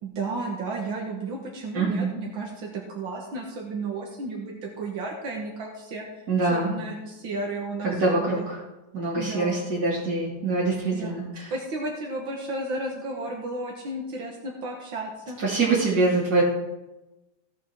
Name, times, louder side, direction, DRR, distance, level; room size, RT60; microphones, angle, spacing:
voice 1, 0.0-8.5 9.1-9.6 10.9-11.2 11.5-15.4, right 2 dB, 85° right, 0 dB, 2.2 m, -33 dB
voice 2, 1.7-2.1 6.3-6.7 7.8-8.6 8.9-11.5 15.4-16.4, right 3 dB, 50° right, -9 dB, 3.1 m, -24 dB
16.0 x 5.5 x 5.9 m, 1.0 s
omnidirectional pair, 2.1 m